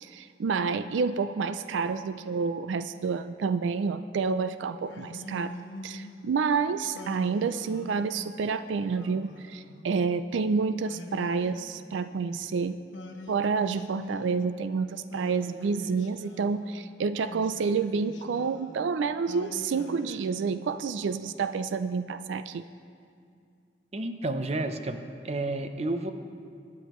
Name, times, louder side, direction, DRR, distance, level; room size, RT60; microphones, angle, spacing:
voice 1, 0.0-5.5 5.8-12.8 13.3-22.6, right 5 dB, 85° right, 12 dB, 0.4 m, -29 dB
Singing, 4.8-6.3 6.9-8.3 8.9-10.2 10.8-12.4 12.9-14.7 15.1-16.7 17.2-18.9 19.3-20.9, left 1 dB, 90° left, 1.1 m, -44 dB
voice 2, 23.9-25.0 25.2-26.1, right 2 dB, 35° right, 8 dB, 0.6 m, -30 dB
23.0 x 9.6 x 3.1 m, 2.4 s
head